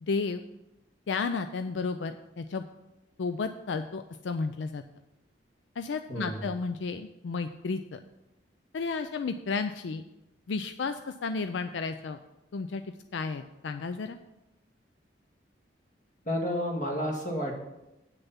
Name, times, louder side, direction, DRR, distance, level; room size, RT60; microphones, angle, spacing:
voice 1, 0.0-0.4 1.1-2.7 3.2-4.8 5.8-8.0 8.7-10.0 10.5-12.2 12.5-12.8 13.1-14.2, left 4 dB, 85° left, 9 dB, 0.4 m, -32 dB
voice 2, 6.1-6.5 16.3-17.8, equal, 45° left, 1 dB, 1.9 m, -31 dB
8.5 x 6.8 x 5.6 m, 0.93 s
head